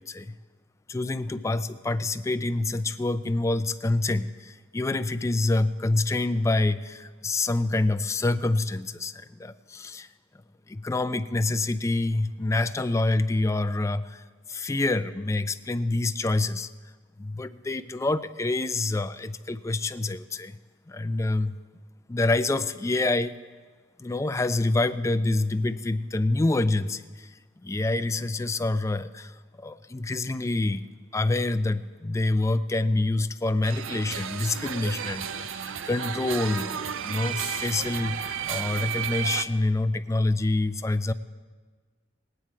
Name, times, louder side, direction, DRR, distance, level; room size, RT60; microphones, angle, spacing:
voice 1, 0.9-10.1 10.7-16.7 17.2-20.6 20.9-21.6 22.1-23.3 24.0-27.3 27.6-30.9 31.1-41.1, left 2 dB, 15° left, 11 dB, 0.3 m, -27 dB
sound 1, 33.6-39.5, right 8 dB, 80° right, 0.5 m, -32 dB
18.5 x 9.1 x 4.7 m, 1.4 s
head